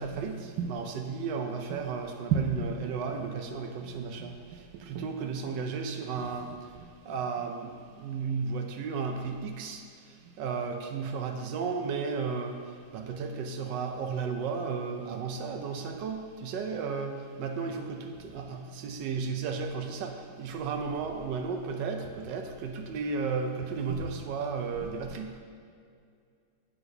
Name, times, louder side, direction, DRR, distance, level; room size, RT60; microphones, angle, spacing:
voice 1, 0.0-9.8 10.4-12.6 12.9-25.3, right 5 dB, 75° right, 5 dB, 1.2 m, -33 dB
7.8 x 7.7 x 2.7 m, 2.2 s
omnidirectional pair, 2.1 m